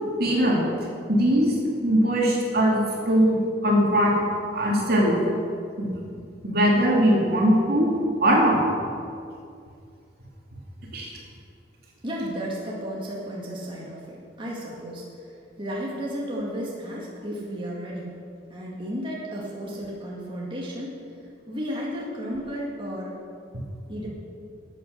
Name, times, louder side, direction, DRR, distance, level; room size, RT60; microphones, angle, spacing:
voice 1, 0.2-0.6 1.1-1.5 1.8-4.2 4.5-5.1 5.8-6.0 6.4-7.9 8.2-8.6 10.9-11.1, equal, 60° right, -2 dB, 2.6 m, -20 dB
voice 2, 12.0-18.1 18.5-21.0 21.5-23.2 23.9-24.1, equal, 30° right, -5 dB, 2.1 m, -33 dB
13.0 x 8.5 x 6.8 m, 2.4 s
head